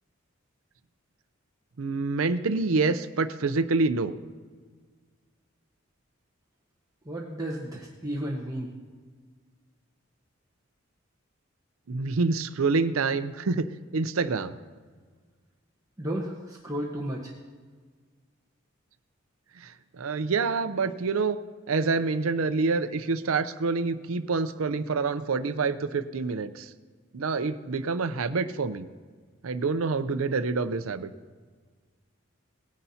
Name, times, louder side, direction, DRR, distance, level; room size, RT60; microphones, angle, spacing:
voice 1, 1.8-4.1 11.9-13.7 13.9-14.5 19.6-21.4 21.7-26.7 27.1-28.9 29.4-31.1, right 4 dB, 85° right, 12 dB, 0.6 m, -27 dB
voice 2, 7.0-8.7 16.0-17.3, right 1 dB, 15° right, -3 dB, 1.1 m, -33 dB
18.5 x 9.8 x 2.8 m, 1.5 s
head